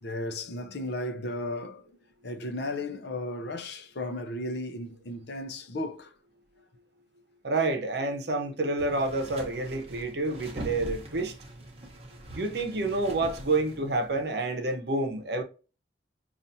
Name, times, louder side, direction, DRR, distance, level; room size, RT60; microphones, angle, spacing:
voice 1, 0.0-1.9 2.2-6.1, left 1 dB, 60° left, 0.6 m, -35 dB
voice 2, 7.4-11.3 12.3-15.4, right 2 dB, 60° right, 0.7 m, -28 dB
sound 1, 8.8-14.2, right 1 dB, 30° right, 0.8 m, -43 dB
5.5 x 2.4 x 2.6 m
head